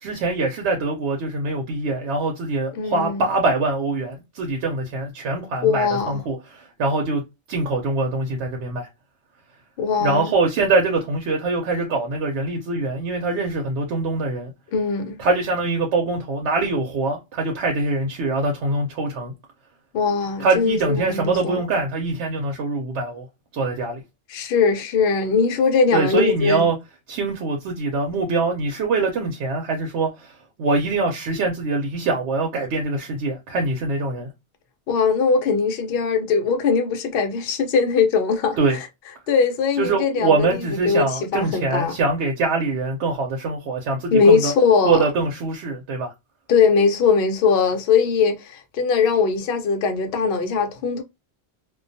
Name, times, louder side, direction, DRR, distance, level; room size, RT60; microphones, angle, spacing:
voice 1, 0.0-8.9 10.0-14.5 15.2-19.3 20.4-23.2 23.5-24.0 25.9-26.8 27.1-30.3 30.6-34.3 38.6-38.8 39.8-44.5 44.8-46.1, right 3 dB, 90° right, 0.9 m, -23 dB
voice 2, 2.7-3.2 5.6-6.2 9.8-10.3 14.7-15.2 19.9-21.6 24.3-26.6 34.9-38.6 39.3-41.9 44.1-45.0 46.5-51.0, left 5 dB, 65° left, 0.8 m, -20 dB
2.3 x 2.2 x 2.5 m
omnidirectional pair, 1.1 m